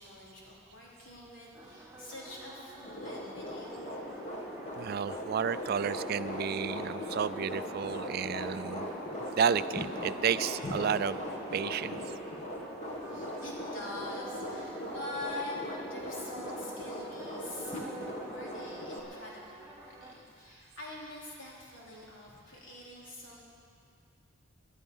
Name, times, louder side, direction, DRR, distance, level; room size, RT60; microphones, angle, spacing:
voice 1, 0.0-3.9 12.1-12.4 13.0-23.4, left 2 dB, 75° left, -5 dB, 3.7 m, -45 dB
sound 1, 1.5-20.1, right 2 dB, 10° right, 1.4 m, -48 dB
sound 2, 2.8-19.0, equal, 35° left, 2.2 m, -39 dB
voice 2, 4.8-8.9 9.4-11.2 11.5-12.0, right 7 dB, 50° right, 15 dB, 0.3 m, -31 dB
20.0 x 11.5 x 5.5 m, 2.3 s
head